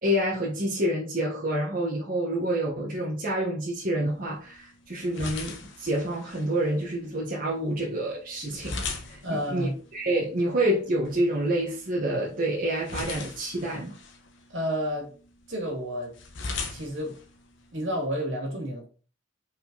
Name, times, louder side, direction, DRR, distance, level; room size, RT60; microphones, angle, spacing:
voice 1, 0.0-14.0, right 1 dB, 45° right, 1.5 m, -28 dB
sound 1, 4.1-18.1, left 4 dB, 65° left, 1.1 m, -41 dB
voice 2, 9.2-9.8 14.5-15.1 15.5-16.1 16.7-17.2 17.7-18.8, equal, 65° right, 2.6 m, -30 dB
5.3 x 4.5 x 4.1 m
head